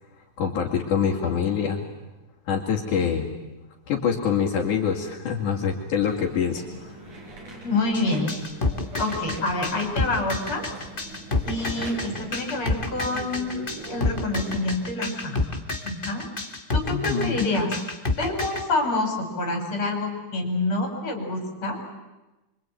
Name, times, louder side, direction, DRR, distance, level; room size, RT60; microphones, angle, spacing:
voice 1, 0.4-1.9 2.5-3.3 3.9-7.0 16.9-17.5, left 7 dB, 80° left, -3 dB, 4.1 m, -25 dB
sound 1, 6.0-14.8, right 2 dB, 80° right, 7.2 m, -41 dB
voice 2, 7.6-8.4 9.0-10.6 11.4-13.6 13.9-15.5 15.8-16.3 16.7-17.7 18.2-21.8, left 2 dB, 40° left, 2 dB, 6.3 m, -27 dB
sound 2, 7.9-18.6, left 3 dB, 20° left, 1.5 m, -28 dB
25.5 x 24.5 x 9.3 m, 1.1 s
omnidirectional pair, 3.5 m